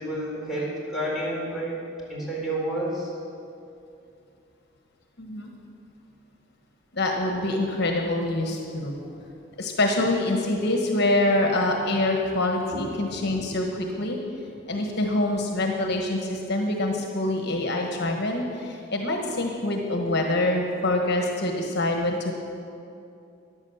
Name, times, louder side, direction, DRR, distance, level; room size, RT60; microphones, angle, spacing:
voice 1, 0.0-1.7 2.1-3.1 12.7-12.8 13.1-13.4, right 1 dB, ahead, -6 dB, 4.2 m, -30 dB
voice 2, 5.2-5.5 6.9-8.9 9.6-14.2 14.7-22.3, left 2 dB, 60° left, 2 dB, 1.4 m, -25 dB
14.5 x 10.5 x 7.1 m, 2.6 s
head